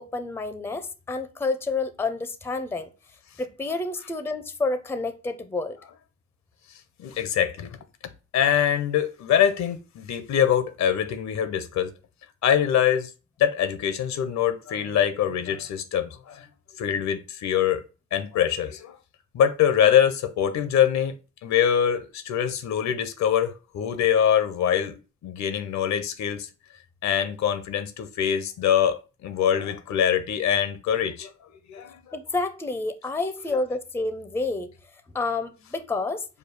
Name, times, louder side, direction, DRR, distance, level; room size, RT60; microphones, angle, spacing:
voice 1, 0.0-2.9 3.4-5.8 32.1-34.7 35.1-36.2, left 3 dB, 10° left, 0.5 m, -29 dB
voice 2, 7.0-7.7 8.3-11.9 12.4-13.1 13.4-16.4 16.8-17.8 18.1-18.9 19.3-21.1 21.4-24.9 25.2-26.5 27.0-31.3 31.7-31.9, left 9 dB, 65° left, 0.7 m, -23 dB
4.9 x 2.3 x 4.6 m
cardioid pair, 90°, 30 cm